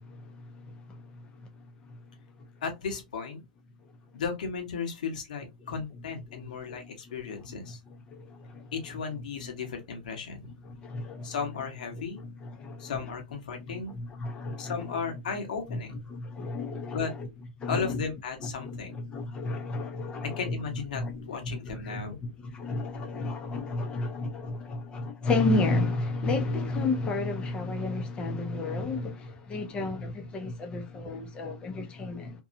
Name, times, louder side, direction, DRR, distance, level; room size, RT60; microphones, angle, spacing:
voice 1, 2.6-3.4 4.1-7.8 8.7-10.5 11.2-12.2 12.8-13.9 14.6-16.0 16.9-17.1 17.7-19.0 20.2-22.2, left 5 dB, 80° left, 1.1 m, -35 dB
voice 2, 8.1-8.6 10.8-11.3 12.6-12.9 14.0-14.7 16.1-17.0 17.6-18.0 18.6-20.4 21.0-21.1 21.5-21.6 21.9-22.0 22.5-32.4, left 3 dB, 25° left, 0.7 m, -31 dB
2.7 x 2.3 x 2.6 m
hypercardioid pair, 130°, 4 cm